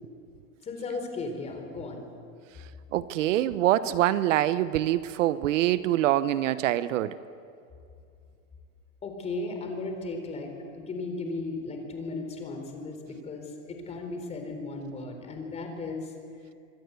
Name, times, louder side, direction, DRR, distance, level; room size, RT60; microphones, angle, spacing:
voice 1, 0.6-2.0 9.0-16.1, left 3 dB, 15° left, 4 dB, 3.9 m, -36 dB
voice 2, 2.9-7.2, right 13 dB, 65° right, 14 dB, 1.0 m, -25 dB
27.0 x 24.5 x 8.2 m, 2.4 s
supercardioid pair, 160°, 41 cm